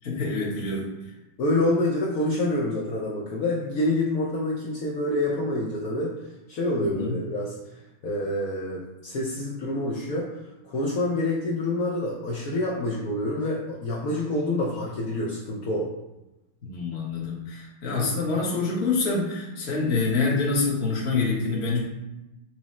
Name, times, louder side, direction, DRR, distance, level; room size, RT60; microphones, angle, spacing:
voice 1, 0.0-0.9 6.8-7.2 16.6-21.8, left 3 dB, 40° left, -3 dB, 1.0 m, -26 dB
voice 2, 1.4-6.2 6.5-7.6 8.0-15.9, left 1 dB, 70° left, -4 dB, 0.8 m, -27 dB
6.0 x 2.0 x 4.2 m, 0.99 s
omnidirectional pair, 2.2 m